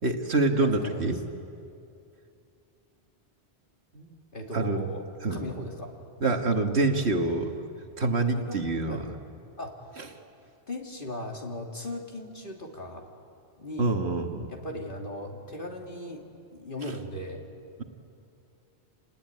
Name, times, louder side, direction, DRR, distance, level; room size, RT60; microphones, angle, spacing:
voice 1, 0.0-1.2 3.9-4.2 4.5-4.9 5.2-5.5 6.2-7.6 8.0-9.2 10.0-10.1 13.8-14.5, right 3 dB, 70° right, 4 dB, 1.9 m, -26 dB
voice 2, 0.6-1.1 4.3-5.0 5.3-5.9 8.3-8.6 8.9-9.0 9.6-9.7 10.7-13.1 13.6-14.0 14.4-16.2 16.5-17.4, left 1 dB, 50° left, 0 dB, 3.0 m, -37 dB
28.0 x 19.5 x 9.7 m, 2.6 s
omnidirectional pair, 1.1 m